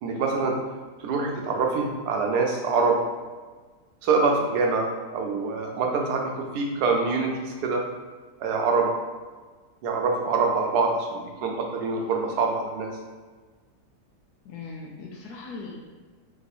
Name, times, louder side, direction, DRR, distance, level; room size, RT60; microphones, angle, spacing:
voice 1, 0.0-0.5 1.0-3.0 4.0-7.8 8.4-8.9 9.8-12.9, right 4 dB, 75° right, 1 dB, 1.2 m, -25 dB
voice 2, 14.4-15.8, left 4 dB, 75° left, -1 dB, 1.1 m, -39 dB
3.5 x 2.9 x 4.1 m, 1.4 s
omnidirectional pair, 1.7 m